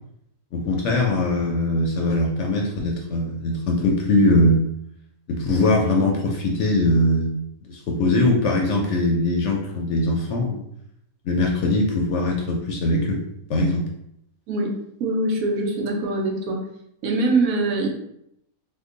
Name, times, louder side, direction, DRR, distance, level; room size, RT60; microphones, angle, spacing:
voice 1, 0.5-4.6 5.3-7.3 7.6-10.6 11.3-13.2 13.5-13.9, left 2 dB, 65° left, 0 dB, 0.8 m, -21 dB
voice 2, 15.0-16.6 17.0-17.9, right 2 dB, 75° right, 0 dB, 1.1 m, -23 dB
2.9 x 2.2 x 3.7 m, 0.76 s
omnidirectional pair, 1.5 m